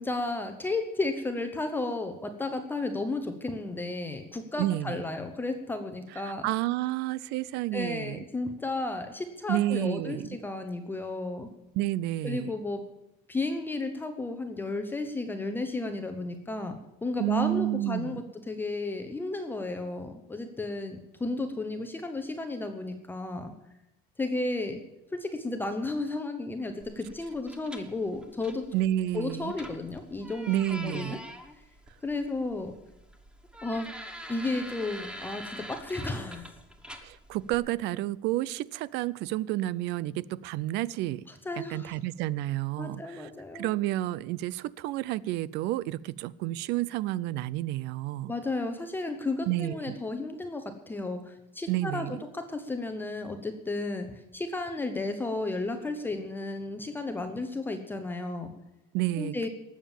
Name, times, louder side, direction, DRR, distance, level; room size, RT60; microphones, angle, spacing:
voice 1, 0.0-6.5 7.7-11.5 12.2-12.8 13.3-23.5 24.2-24.8 25.1-28.6 29.1-31.2 32.0-32.7 33.6-33.9 34.3-36.5 41.3-42.0 42.8-43.7 48.3-52.1 52.3-58.5 59.2-59.5, left 2 dB, 10° left, 6 dB, 0.9 m, -33 dB
voice 2, 4.6-5.0 6.2-8.2 9.5-10.3 11.7-12.5 17.2-18.2 28.7-29.5 30.5-31.2 37.0-41.2 41.7-43.3 43.5-48.3 49.5-50.0 51.7-52.2 58.9-59.5, right 15 dB, 65° right, 22 dB, 0.5 m, -30 dB
sound 1, 26.8-37.6, equal, 5° right, 1.2 m, -45 dB
18.5 x 7.3 x 7.2 m, 0.93 s
cardioid pair, 160°, 19 cm